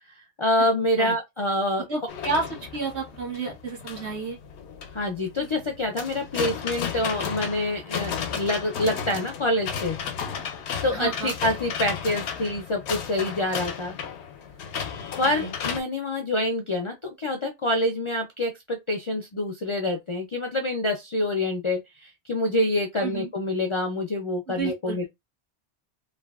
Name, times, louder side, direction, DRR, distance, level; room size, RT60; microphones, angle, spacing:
voice 1, 0.1-1.8 4.9-10.0 10.8-14.0 15.2-25.0, left 1 dB, 55° left, 0.3 m, -26 dB
voice 2, 1.9-4.4 10.9-11.3 15.2-15.5 23.0-23.3 24.5-25.1, right 4 dB, 80° right, 1.4 m, -31 dB
sound 1, 2.1-15.8, left 7 dB, 90° left, 0.9 m, -34 dB
3.2 x 2.2 x 2.3 m
omnidirectional pair, 1.1 m